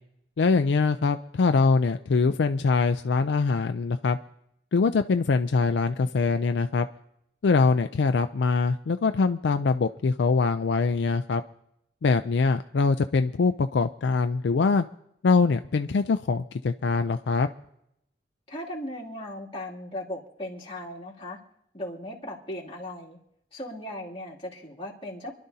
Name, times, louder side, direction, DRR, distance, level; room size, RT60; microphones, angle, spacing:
voice 1, 0.4-4.2 4.7-6.9 7.4-11.4 12.0-14.8 15.2-17.5, left 4 dB, 70° left, 8 dB, 0.4 m, -23 dB
voice 2, 18.5-21.4 21.7-23.2 23.5-25.3, left 1 dB, 30° left, -5 dB, 2.7 m, -37 dB
27.5 x 11.5 x 2.8 m, 0.78 s
head